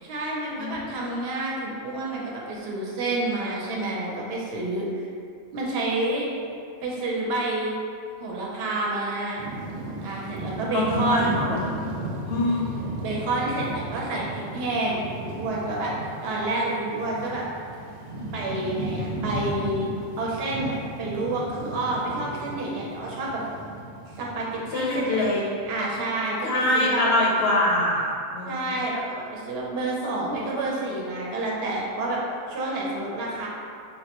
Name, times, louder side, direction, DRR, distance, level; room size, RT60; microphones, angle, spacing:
voice 1, 0.0-5.0 5.5-6.3 6.8-7.7 8.2-9.4 10.0-11.3 13.0-15.9 16.2-17.4 18.3-19.9 20.2-23.4 24.1-27.0 28.5-32.2 32.5-33.5, right 2 dB, 60° right, -3 dB, 0.8 m, -29 dB
voice 2, 0.6-1.0 10.7-12.0 12.2-12.6 24.7-25.4 26.4-28.8, left 1 dB, 60° left, -3 dB, 0.8 m, -24 dB
sound 1, 9.4-26.2, right 2 dB, 85° right, 0.3 m, -35 dB
4.0 x 2.1 x 2.9 m, 2.4 s
omnidirectional pair, 1.3 m